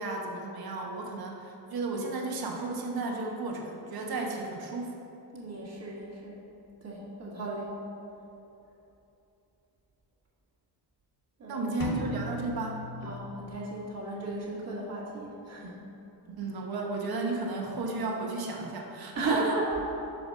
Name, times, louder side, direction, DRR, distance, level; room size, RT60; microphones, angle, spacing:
voice 1, 0.0-4.9 11.5-12.9 16.4-19.6, right 3 dB, 60° right, 0 dB, 1.0 m, -33 dB
voice 2, 5.3-6.4 6.8-7.8 11.4-11.9 13.0-15.8 19.1-19.8, right 2 dB, 40° right, -5 dB, 1.6 m, -35 dB
sound 1, 11.8-13.8, equal, 55° left, 1.0 m, -38 dB
5.2 x 4.9 x 6.1 m, 2.9 s
cardioid pair, 125°, 41 cm